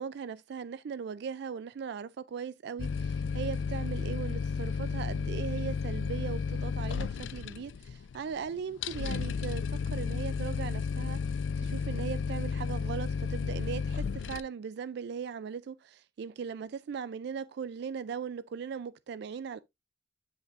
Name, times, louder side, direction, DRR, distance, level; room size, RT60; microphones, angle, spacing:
voice 1, 0.0-19.6, right 6 dB, 65° right, 0.3 m, -39 dB
sound 1, 2.8-14.4, left 6 dB, 80° left, 0.4 m, -33 dB
10.5 x 5.9 x 2.5 m
head